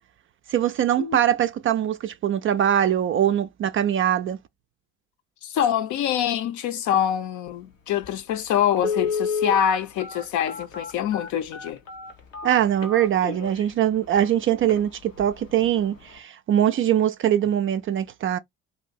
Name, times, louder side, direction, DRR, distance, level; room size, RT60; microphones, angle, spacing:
voice 1, 0.5-4.4 12.4-18.4, right 10 dB, 35° right, 0.4 m, -22 dB
voice 2, 5.4-11.8, left 9 dB, 50° left, 0.6 m, -25 dB
Telephone, 8.0-8.1 8.8-13.6 14.2-14.3 14.6-14.8 15.2-15.5 15.8-15.9, left 5 dB, 85° left, 0.8 m, -30 dB
2.7 x 2.5 x 3.9 m
figure-of-eight pair, 50°, 38 cm